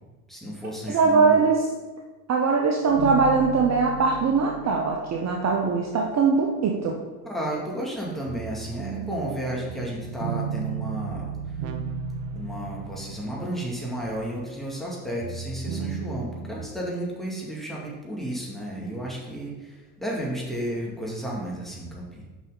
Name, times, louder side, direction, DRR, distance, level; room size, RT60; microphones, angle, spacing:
voice 1, 0.3-1.4 7.2-11.7 12.3-22.3, right 1 dB, ahead, -4 dB, 2.3 m, -33 dB
voice 2, 0.9-1.7 2.3-7.0, right 4 dB, 35° right, 1 dB, 0.9 m, -21 dB
sound 1, 2.9-6.2 8.3-14.8 15.2-16.7, right 7 dB, 75° right, 0.8 m, -35 dB
6.0 x 5.6 x 3.9 m, 1.2 s
hypercardioid pair, 70°, 45 cm